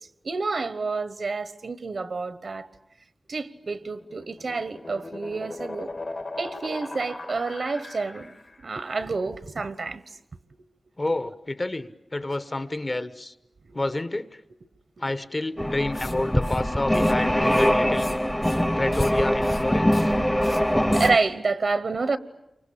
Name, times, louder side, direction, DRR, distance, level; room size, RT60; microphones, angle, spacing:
voice 1, 0.2-2.7 3.3-5.9 6.4-8.4 8.6-10.0 13.7-13.8 20.9-22.2, right 4 dB, 70° right, 1.1 m, -28 dB
sound 1, 3.8-8.6, left 2 dB, 50° left, 2.0 m, -38 dB
voice 2, 11.0-13.3 13.7-14.4 15.0-18.1 18.8-20.1, left 2 dB, 35° left, 1.2 m, -29 dB
sound 2, 15.6-21.2, equal, 5° left, 0.9 m, -23 dB
Writing, 15.9-16.1 16.4-16.6 16.9-17.1 17.4-18.2 18.4-18.7 18.9-19.1 19.4-19.6 19.9-20.1 20.4-20.6 20.9-21.1, left 3 dB, 70° left, 4.0 m, -41 dB
28.0 x 24.5 x 8.6 m
wide cardioid pair, 90°, 0 cm